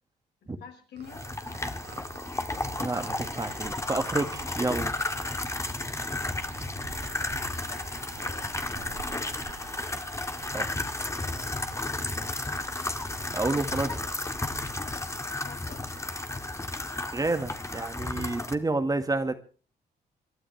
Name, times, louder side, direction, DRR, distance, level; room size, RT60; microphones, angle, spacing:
voice 1, 0.4-1.7 7.6-9.0 11.0-11.9 15.3-16.4, left 7 dB, 80° left, 2 dB, 6.0 m, -50 dB
sound 1, 0.9-16.7, right 6 dB, 75° right, 3.6 m, -52 dB
Warm flesh in a mechanical meat grinder(Eq lmtr), 1.1-18.5, left 2 dB, 15° left, 2.0 m, -33 dB
voice 2, 2.8-5.0 10.5-10.7 13.3-14.0 17.1-19.4, right 2 dB, 20° right, 8 dB, 1.9 m, -29 dB
sound 2, 3.1-14.7, right 5 dB, 55° right, 2.3 m, -50 dB
27.5 x 12.5 x 3.4 m, 0.38 s
cardioid pair, 90°, 17 cm